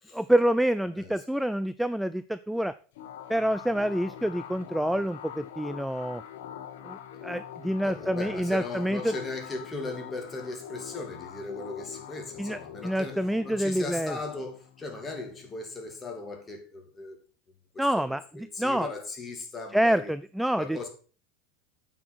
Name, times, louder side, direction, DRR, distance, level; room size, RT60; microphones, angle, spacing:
voice 1, 0.1-2.7 3.3-6.2 6.8-9.1 12.4-14.2 17.8-18.9 19.7-20.8, right 1 dB, ahead, 0.4 m, -27 dB
sound 1, 3.0-16.2, left 10 dB, 80° left, 1.3 m, -44 dB
voice 2, 7.8-17.2 17.7-20.1 20.6-20.9, left 3 dB, 20° left, 2.9 m, -38 dB
9.0 x 6.1 x 6.2 m
supercardioid pair, 125°, 0 cm